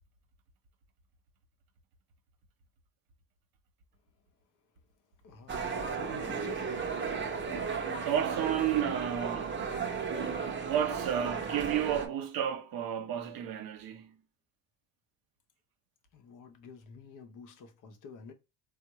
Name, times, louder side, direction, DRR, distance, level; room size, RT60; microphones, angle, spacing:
voice 1, 5.2-6.7 16.1-18.3, left 5 dB, 50° left, 0.7 m, -49 dB
sound 1, 5.5-12.1, right 5 dB, 30° right, 0.7 m, -34 dB
voice 2, 7.6-9.6 10.0-10.1 10.6-14.2, right 9 dB, 65° right, 0.8 m, -32 dB
3.5 x 2.1 x 2.9 m
supercardioid pair, 75°, 39 cm